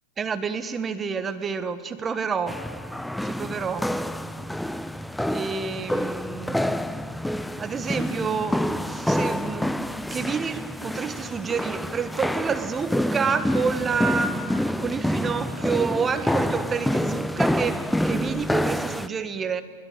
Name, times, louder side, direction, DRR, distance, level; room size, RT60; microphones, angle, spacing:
voice 1, 0.2-2.6 3.2-3.9 5.3-6.8 7.6-14.3 14.8-19.6, right 5 dB, 20° right, 10 dB, 1.5 m, -29 dB
sound 1, 2.5-19.1, left 1 dB, 5° left, 0.7 m, -27 dB
22.0 x 20.0 x 9.0 m, 2.1 s
hypercardioid pair, 100°, 0 cm